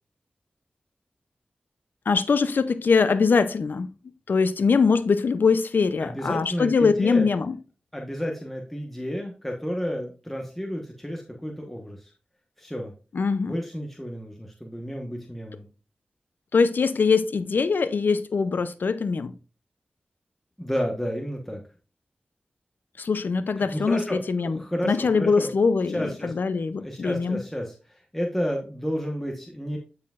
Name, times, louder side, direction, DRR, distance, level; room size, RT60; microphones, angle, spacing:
voice 1, 2.1-3.9 4.3-7.6 13.1-13.5 16.5-19.3 23.0-27.4, left 5 dB, 80° left, 0.5 m, -22 dB
voice 2, 6.0-7.2 7.9-12.1 12.6-12.9 13.5-15.7 20.6-21.6 23.6-25.5 25.9-26.3 26.8-29.8, equal, 5° left, 1.2 m, -31 dB
9.6 x 5.8 x 2.4 m
wide cardioid pair, 90°, 3 cm